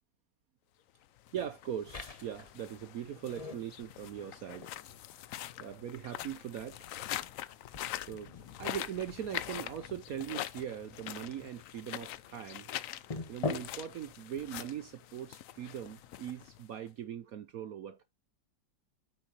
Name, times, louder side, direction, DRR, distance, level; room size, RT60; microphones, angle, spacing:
sound 1, 1.2-16.9, left 13 dB, 85° left, 0.7 m, -44 dB
voice 1, 1.3-4.7 5.6-6.9 8.1-8.3 8.6-12.7 13.3-18.0, right 9 dB, 60° right, 1.0 m, -40 dB
sound 2, 1.9-16.6, left 4 dB, 35° left, 0.6 m, -47 dB
8.9 x 6.9 x 2.9 m
omnidirectional pair, 2.0 m